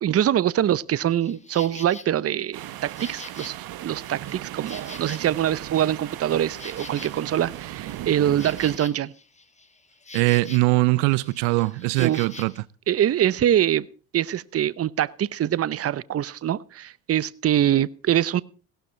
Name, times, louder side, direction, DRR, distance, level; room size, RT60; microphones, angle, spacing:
voice 1, 0.0-3.6 3.8-9.1 12.0-12.3 12.9-13.9 14.1-18.4, right 11 dB, 35° right, 0.8 m, -24 dB
Insect, 1.2-2.1 2.6-5.6 5.9-10.8 11.1-12.6, left 3 dB, 15° left, 1.9 m, -44 dB
sound 1, 2.5-8.8, right 13 dB, 60° right, 1.3 m, -37 dB
voice 2, 10.1-12.5, right 22 dB, 80° right, 0.7 m, -21 dB
17.0 x 12.5 x 4.4 m
supercardioid pair, 85°, 41 cm